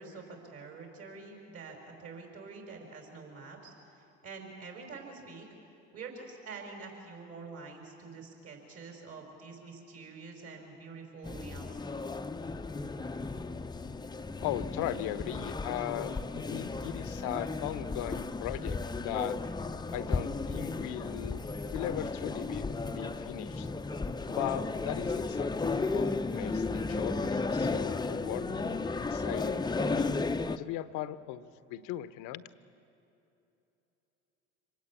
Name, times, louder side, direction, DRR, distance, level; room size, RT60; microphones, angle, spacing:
voice 1, 0.0-5.5 5.9-11.8, right 4 dB, 50° right, 2 dB, 4.7 m, -46 dB
sound 1, 11.2-30.6, left 3 dB, 15° left, 0.7 m, -34 dB
voice 2, 14.4-19.4 19.9-21.4 21.7-23.7 24.3-30.1 30.6-32.4, left 13 dB, 70° left, 14 dB, 1.0 m, -38 dB
25.5 x 18.5 x 8.5 m, 2.9 s
hypercardioid pair, 70°, 32 cm